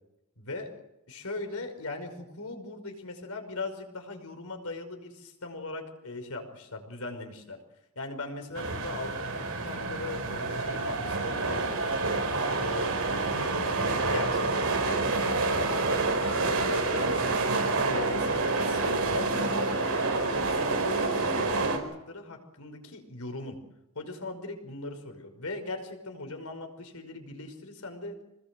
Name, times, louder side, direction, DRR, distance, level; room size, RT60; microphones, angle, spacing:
voice 1, 0.4-0.7 1.1-7.6 8.0-12.0 12.6-17.3 17.9-23.6 24.0-28.2, left 2 dB, 70° left, 5 dB, 5.5 m, -39 dB
sound 1, 8.5-21.8, right 3 dB, 65° right, 5.1 m, -28 dB
27.0 x 20.0 x 7.7 m, 0.90 s
head